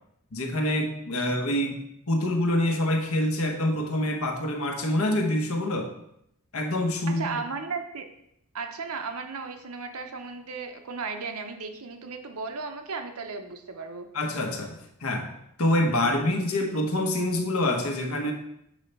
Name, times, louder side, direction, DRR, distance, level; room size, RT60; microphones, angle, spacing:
voice 1, 0.3-1.8 2.1-5.9 6.5-7.4 14.1-15.3 15.6-18.3, left 1 dB, 75° left, 3 dB, 1.1 m, -26 dB
voice 2, 7.1-8.1 8.5-14.1, right 4 dB, 80° right, 6 dB, 0.8 m, -35 dB
7.2 x 3.3 x 5.4 m, 0.77 s
head